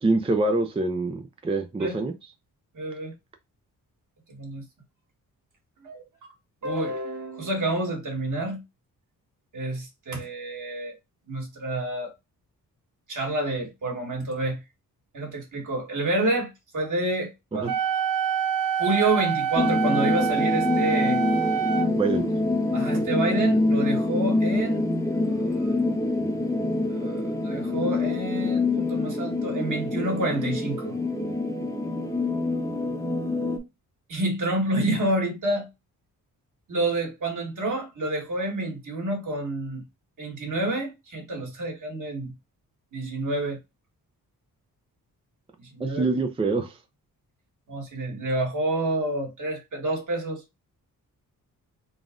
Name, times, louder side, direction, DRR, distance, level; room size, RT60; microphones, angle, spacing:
voice 1, 0.0-2.1 17.5-17.7 22.0-22.3 45.8-46.8, right 3 dB, 15° right, 0.5 m, -25 dB
voice 2, 2.7-3.1 4.3-4.6 5.8-6.0 6.6-8.6 9.5-10.9 11.3-12.1 13.1-14.6 15.1-17.7 18.8-21.2 22.7-24.8 25.3-25.8 26.9-31.0 34.1-35.7 36.7-39.8 40.2-42.3 42.9-43.6 45.6-46.0 47.7-50.4, right 2 dB, 55° right, 1.9 m, -28 dB
Wind instrument woodwind instrument, 17.7-21.9, right 8 dB, 70° right, 0.6 m, -26 dB
sound 1, 19.6-33.6, left 2 dB, 10° left, 0.8 m, -26 dB
4.0 x 2.4 x 3.7 m
cardioid pair, 90°, 36 cm